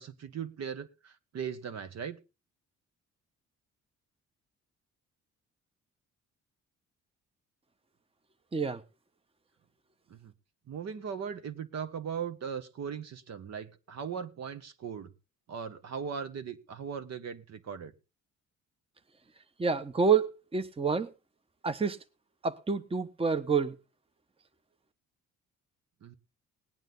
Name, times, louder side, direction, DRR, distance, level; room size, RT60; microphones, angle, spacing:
voice 1, 0.0-2.2 10.1-10.3 10.7-15.1 15.5-17.9 26.0-26.2, right 7 dB, 60° right, 1.5 m, -39 dB
voice 2, 19.6-21.1 21.6-22.0 22.4-23.7, right 5 dB, 20° right, 1.0 m, -28 dB
18.5 x 9.1 x 3.9 m
cardioid pair, 90°, 30 cm